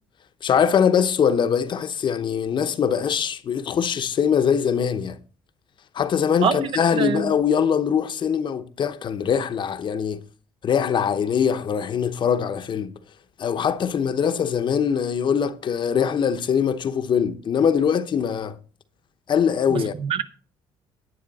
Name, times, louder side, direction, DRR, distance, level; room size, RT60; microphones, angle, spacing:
voice 1, 0.4-5.2 5.9-10.2 10.6-12.9 13.4-18.6 19.3-19.9, left 7 dB, 50° left, 0.9 m, -22 dB
voice 2, 6.9-7.3 19.7-20.2, right 7 dB, 60° right, 1.1 m, -24 dB
10.5 x 8.8 x 4.1 m
cardioid pair, 85°, 10 cm